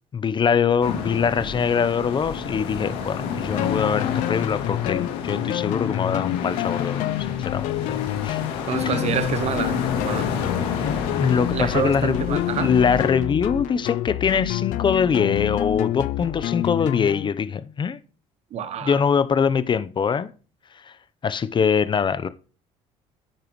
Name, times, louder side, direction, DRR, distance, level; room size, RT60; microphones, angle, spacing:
voice 1, 0.1-8.0 8.2-8.4 8.8-9.0 10.8-18.0 18.8-20.3 20.9-21.0 21.2-22.3, left 6 dB, 35° left, 0.8 m, -23 dB
sound 1, 0.8-13.1, left 6 dB, 85° left, 2.5 m, -31 dB
sound 2, 3.6-17.3, left 15 dB, 70° left, 0.4 m, -28 dB
voice 2, 8.7-10.3 11.3-12.7 18.5-19.0, right 8 dB, 55° right, 1.1 m, -27 dB
10.0 x 9.1 x 3.1 m
supercardioid pair, 85°, 13 cm